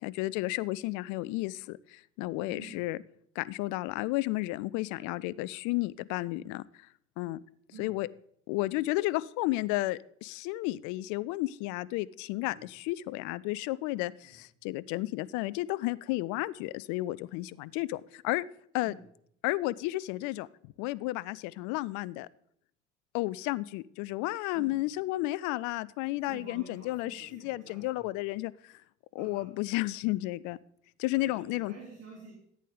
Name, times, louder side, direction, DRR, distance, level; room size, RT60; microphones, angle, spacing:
voice 1, 0.0-3.0 3.4-6.6 7.2-7.4 7.8-8.1 8.5-18.5 18.7-18.9 19.4-22.3 23.1-28.8 29.1-30.6 31.0-31.7, left 19 dB, 55° left, 18 dB, 0.5 m, -32 dB
voice 2, 2.5-2.8 7.7-7.9 12.4-12.6 14.2-14.4 18.8-19.0 24.5-24.9 26.1-28.0 29.2-29.5 31.1-32.3, right 4 dB, 45° right, -3 dB, 3.2 m, -50 dB
14.5 x 8.4 x 3.8 m, 0.69 s
figure-of-eight pair, 55°, 35 cm